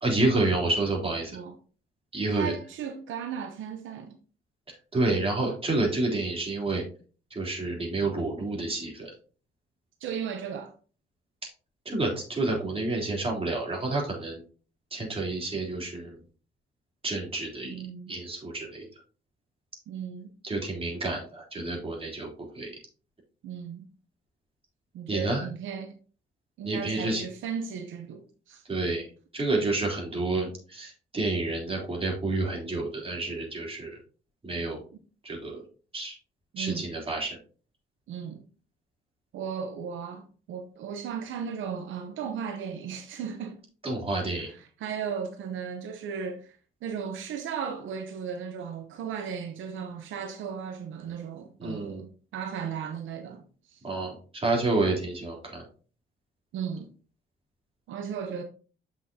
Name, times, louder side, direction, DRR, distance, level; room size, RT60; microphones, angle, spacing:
voice 1, 0.0-1.3 2.1-2.5 4.9-6.8 7.3-9.1 11.8-14.4 14.9-16.2 17.0-17.8 18.1-18.9 20.4-22.7 25.1-25.5 26.6-27.2 28.7-34.0 34.4-34.8 35.2-35.6 35.9-36.1 36.6-37.4 43.8-44.5 51.6-52.0 53.8-55.6, right 2 dB, 30° right, 3.4 m, -29 dB
voice 2, 2.3-4.1 10.0-10.7 17.7-18.1 19.9-20.3 23.4-23.9 24.9-25.9 26.6-28.7 36.5-36.9 38.1-38.4 39.3-43.6 44.3-53.9 56.5-56.9 57.9-58.4, right 7 dB, 75° right, 0.8 m, -36 dB
7.7 x 6.0 x 2.8 m
cardioid pair, 90°, 20 cm